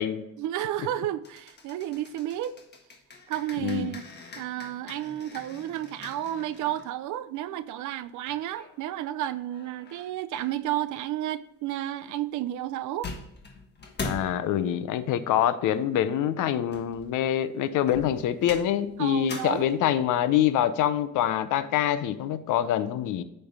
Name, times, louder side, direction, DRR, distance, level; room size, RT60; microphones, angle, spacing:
voice 1, 0.4-2.6 3.3-4.1 4.4-13.1 19.0-19.6, right 13 dB, 80° right, 0.5 m, -32 dB
sound 1, 1.2-6.9 8.3-9.1 9.5-10.6 12.7-12.8 13.0-14.4 16.5-17.3 17.9-20.0, left 3 dB, 35° left, 1.3 m, -42 dB
voice 2, 3.6-4.0 14.0-23.2, left 10 dB, 85° left, 0.6 m, -25 dB
8.7 x 3.4 x 5.4 m
cardioid pair, 90°, 30 cm